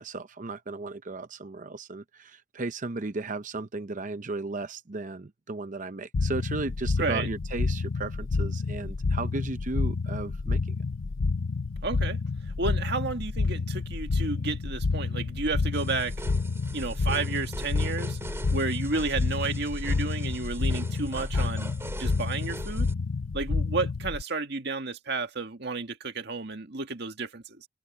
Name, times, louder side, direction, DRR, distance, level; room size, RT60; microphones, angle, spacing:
voice 1, 0.0-10.6, right 3 dB, 40° right, 0.7 m, -35 dB
sound 1, 6.1-24.2, left 4 dB, 80° left, 0.6 m, -29 dB
voice 2, 11.8-12.2 12.6-16.1 16.7-18.2 18.5-21.7 22.0-22.9 23.3-27.7, right 3 dB, 60° right, 1.9 m, -32 dB
sound 2, 15.7-22.9, right 1 dB, 15° right, 2.2 m, -42 dB
head